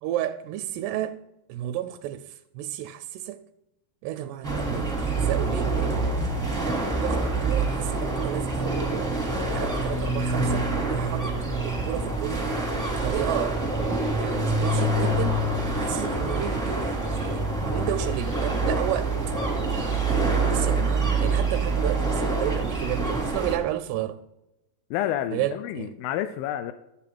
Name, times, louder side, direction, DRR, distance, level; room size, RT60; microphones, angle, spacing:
voice 1, 0.0-1.2 1.5-3.4 4.0-6.6 7.0-9.1 9.5-12.5 12.9-13.6 14.2-15.4 15.8-19.1 20.5-24.2 25.3-25.9, right 12 dB, 85° right, 2.6 m, -32 dB
sound 1, 4.4-23.6, right 2 dB, 15° right, 0.5 m, -26 dB
voice 2, 24.9-26.7, left 12 dB, 85° left, 2.1 m, -29 dB
13.0 x 7.2 x 4.5 m
omnidirectional pair, 4.7 m